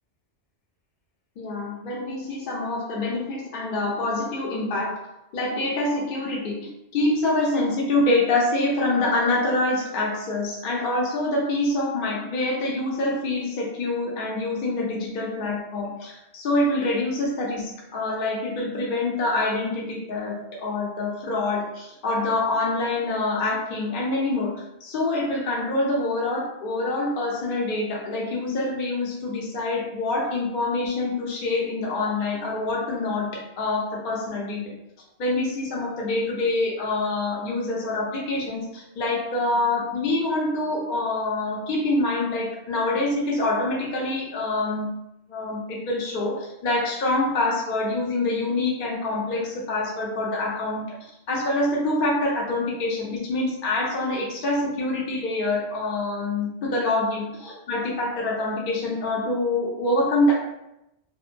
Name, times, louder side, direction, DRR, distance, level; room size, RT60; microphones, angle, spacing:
voice 1, 1.4-5.0 5.3-20.3 20.6-24.5 24.8-34.6 35.2-44.9 45.3-60.3, left 2 dB, 60° left, -3 dB, 0.7 m, -26 dB
2.7 x 2.1 x 2.5 m, 0.87 s
omnidirectional pair, 1.2 m